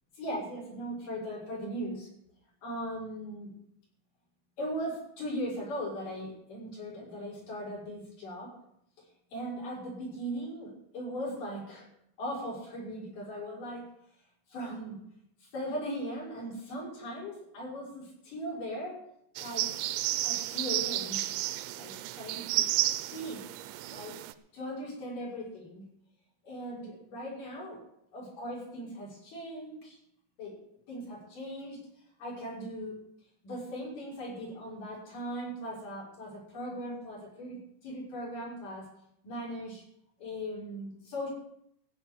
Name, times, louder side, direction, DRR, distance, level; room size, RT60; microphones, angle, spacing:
voice 1, 0.1-2.1 2.6-3.5 4.6-8.5 9.3-11.9 12.2-13.9 14.5-15.0 15.4-19.0 19.4-19.7 20.2-21.2 21.8-22.7 23.1-23.5 23.9-24.2 24.5-25.9 26.4-27.8 28.1-30.0 30.4-30.6 30.9-31.8 32.2-33.0 33.4-38.9 39.2-39.8 40.2-41.3, equal, 45° left, -5 dB, 7.3 m, -39 dB
sound 1, 19.4-24.3, right 14 dB, 80° right, 2.9 m, -32 dB
15.0 x 6.3 x 9.7 m, 0.74 s
omnidirectional pair, 5.5 m